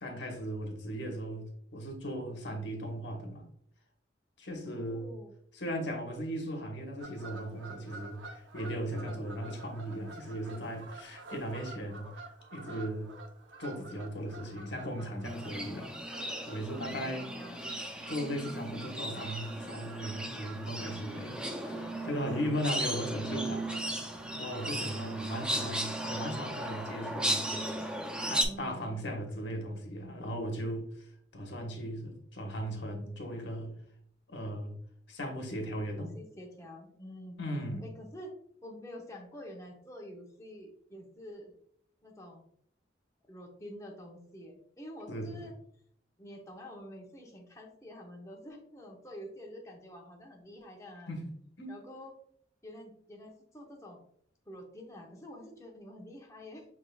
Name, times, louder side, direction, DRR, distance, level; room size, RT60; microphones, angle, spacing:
voice 1, 0.0-3.4 4.4-5.1 5.5-12.1 12.5-13.1 13.6-15.9 16.5-17.3 18.1-23.7 24.3-27.6 28.2-31.1 31.3-33.7 34.3-34.7 35.1-36.1 37.4-37.8 45.1-45.5 51.1-51.3 51.6-51.8, equal, 70° left, 2 dB, 1.2 m, -37 dB
voice 2, 4.6-5.3 16.9-17.8 25.3-25.6 28.4-29.1 35.9-37.4 37.8-38.3 38.6-41.5 42.0-42.4 43.3-45.5 46.2-51.1 51.7-52.1 52.6-54.0 54.5-56.6, equal, 15° left, 0 dB, 0.8 m, -48 dB
Fowl / Bird vocalization bird call bird song, 7.0-26.9, right 3 dB, 80° right, 0.7 m, -51 dB
sound 1, 15.2-28.4, right 1 dB, 5° right, 0.4 m, -36 dB
6.1 x 3.6 x 2.3 m, 0.67 s
head